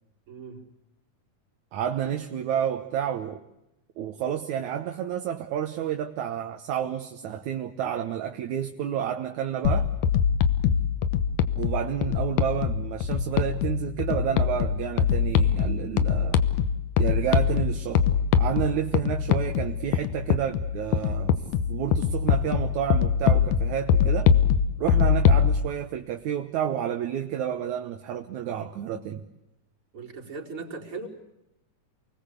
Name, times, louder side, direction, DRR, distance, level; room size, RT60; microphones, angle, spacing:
voice 1, 0.3-0.6 29.9-31.1, right 4 dB, 45° right, -1 dB, 4.9 m, -38 dB
voice 2, 1.7-3.4 4.0-9.9 11.6-16.4 17.0-18.0 18.4-21.3 21.7-24.3 24.8-29.2, right 9 dB, 70° right, 5 dB, 2.5 m, -30 dB
sound 1, 9.6-25.5, left 7 dB, 90° left, 2.7 m, -23 dB
29.0 x 21.0 x 8.3 m, 0.89 s
omnidirectional pair, 3.6 m